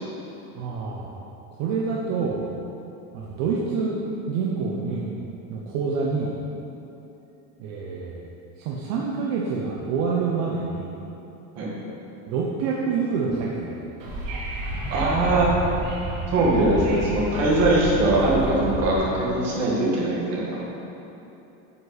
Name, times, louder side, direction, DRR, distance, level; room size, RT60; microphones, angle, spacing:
voice 1, 0.6-1.1 1.6-2.4 3.1-4.0 4.3-5.1 5.5-6.3 7.6-8.3 8.6-10.9 12.3-14.1, right 5 dB, 70° right, -3 dB, 0.9 m, -27 dB
Wind / Subway metro underground, 14.0-19.0, right 1 dB, 85° right, 1.9 m, -30 dB
voice 2, 14.9-15.7 16.3-20.6, right 2 dB, 45° right, -5 dB, 1.9 m, -21 dB
9.2 x 5.6 x 4.1 m, 2.9 s
cardioid pair, 165°, 37 cm